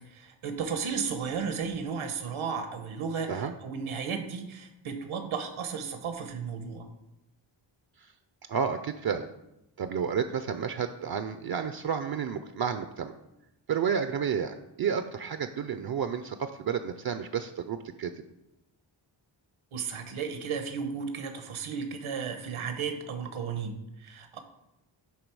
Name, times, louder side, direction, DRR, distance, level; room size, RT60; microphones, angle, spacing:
voice 1, 0.1-6.9 19.7-24.4, right 6 dB, 85° right, 6 dB, 1.1 m, -34 dB
voice 2, 8.5-9.3 9.8-13.1 13.7-18.1, right 7 dB, 50° right, 9 dB, 0.5 m, -31 dB
10.5 x 3.7 x 4.7 m, 0.89 s
wide cardioid pair, 110°, 47 cm